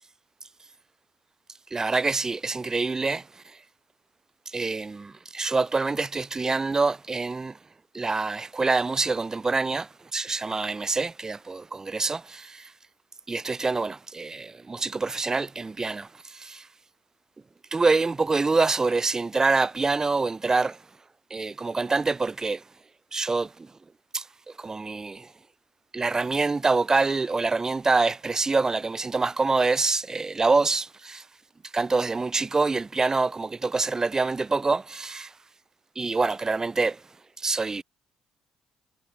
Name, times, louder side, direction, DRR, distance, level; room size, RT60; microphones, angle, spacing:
voice 1, 1.7-3.3 4.5-7.6 7.9-12.7 13.3-16.7 17.7-20.8 21.3-22.6 23.1-23.7 24.1-24.2 24.6-25.3 25.9-31.2 31.7-35.3 36.0-37.0 37.4-37.8, right 3 dB, 25° right, 2.9 m, -26 dB
hypercardioid pair, 50°, 2 cm